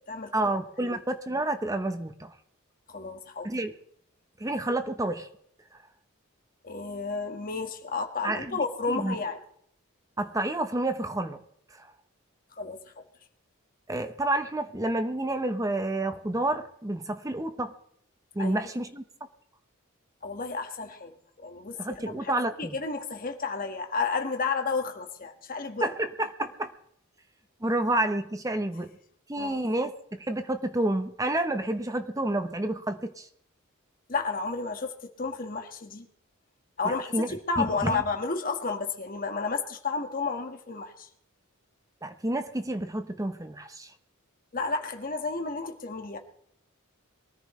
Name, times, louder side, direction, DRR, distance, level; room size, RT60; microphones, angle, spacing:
voice 1, 0.3-2.3 3.4-3.7 4.4-5.3 8.2-9.2 10.2-11.4 11.7-11.9 13.9-17.7 18.3-19.0 21.8-22.8 25.8-26.7 27.6-28.9 29.3-29.9 30.2-33.3 36.8-37.3 37.6-38.0 42.0-43.9, right 1 dB, 15° right, 9 dB, 0.9 m, -29 dB
voice 2, 2.9-3.5 6.6-9.4 12.5-12.8 18.4-18.7 20.2-21.1 21.4-21.8 22.1-25.9 29.4-29.6 34.1-34.9 35.2-36.1 36.8-41.1 44.5-46.2, left 4 dB, 40° left, 4 dB, 1.7 m, -32 dB
23.0 x 14.0 x 3.3 m, 0.68 s
head